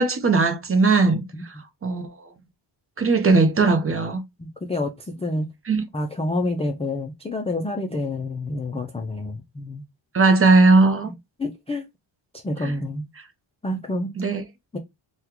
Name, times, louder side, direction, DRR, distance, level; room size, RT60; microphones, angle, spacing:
voice 1, 0.0-1.5 1.8-2.1 3.0-4.2 5.7-5.8 10.1-11.1 12.6-12.7 14.2-14.4, right 3 dB, 30° right, 0.6 m, -18 dB
voice 2, 4.4-5.5 5.9-9.8 11.1-11.2 11.4-11.8 12.3-13.1 13.6-14.1 14.7-14.8, left 2 dB, 15° left, 0.3 m, -28 dB
3.6 x 2.3 x 2.8 m
wide cardioid pair, 130°, 47 cm